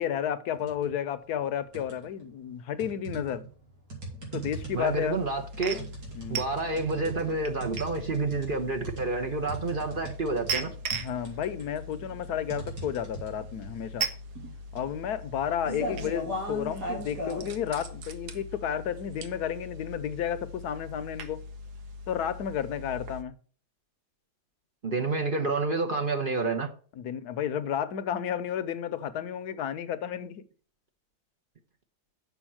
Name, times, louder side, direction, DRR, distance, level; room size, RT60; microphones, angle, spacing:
voice 1, 0.0-3.4 4.3-5.2 5.7-5.8 6.1-6.4 11.0-14.1 14.7-21.4 22.1-23.4 27.0-30.4, left 9 dB, 70° left, 1.3 m, -32 dB
sound 1, 0.5-0.9 1.3-2.2 2.8-17.5, right 1 dB, 90° right, 3.7 m, -39 dB
sound 2, 4.4-23.2, right 2 dB, 75° right, 1.5 m, -40 dB
voice 2, 4.7-5.8 6.3-10.7 15.7-15.8 24.8-26.7, right 3 dB, 40° right, 0.9 m, -29 dB
7.1 x 5.5 x 7.3 m
omnidirectional pair, 1.8 m